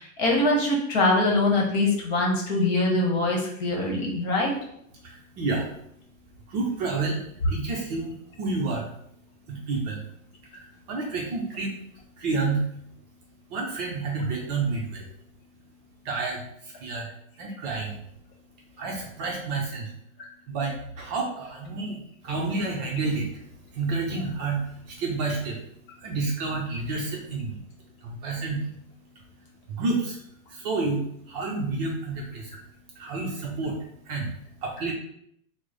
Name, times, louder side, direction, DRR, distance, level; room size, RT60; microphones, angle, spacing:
voice 1, 0.0-4.5, left 2 dB, 45° left, -1 dB, 1.1 m, -23 dB
voice 2, 4.9-5.8 6.4-8.9 9.5-10.0 10.4-12.8 13.5-15.1 16.0-18.0 18.7-19.9 20.5-25.7 26.0-27.6 28.0-28.7 29.1-29.3 29.7-30.2 30.5-32.6 32.9-34.4 34.6-34.9, right 3 dB, 30° right, -2 dB, 0.5 m, -30 dB
3.0 x 2.0 x 3.7 m, 0.72 s
hypercardioid pair, 135°, 42 cm